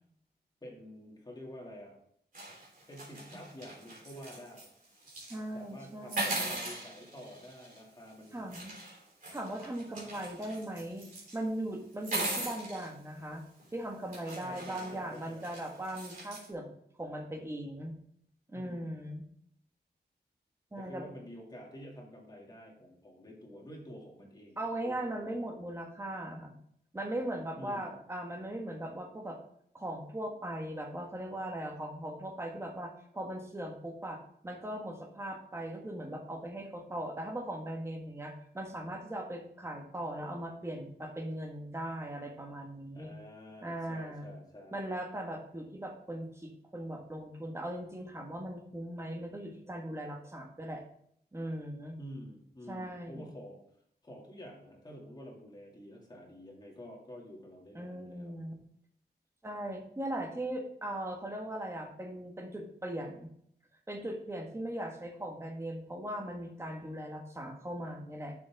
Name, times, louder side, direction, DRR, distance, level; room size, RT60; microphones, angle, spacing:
voice 1, 0.6-2.0 2.9-4.7 5.5-8.4 10.0-10.1 14.4-15.5 18.5-18.9 20.7-25.3 27.6-27.9 42.9-44.9 52.0-53.6 54.0-58.4, equal, 25° left, -1 dB, 2.2 m, -49 dB
sound 1, 2.3-4.7 5.0-5.4 6.1-7.8 8.5-11.3 11.9-12.9 13.6-13.7 14.1-16.5, right 2 dB, 50° right, 3.4 m, -39 dB
voice 2, 5.3-6.5 8.3-8.8 9.3-13.4 13.7-16.7 17.0-18.0 18.5-19.2 20.7-21.1 24.6-26.5 26.9-29.4 29.7-43.2 43.6-44.3 44.7-50.8 51.3-52.0 52.7-53.3 57.7-58.5 59.4-63.3 63.9-68.3, right 1 dB, 15° right, 2 dB, 1.5 m, -39 dB
11.0 x 6.9 x 3.5 m, 0.68 s
wide cardioid pair, 175°, 17 cm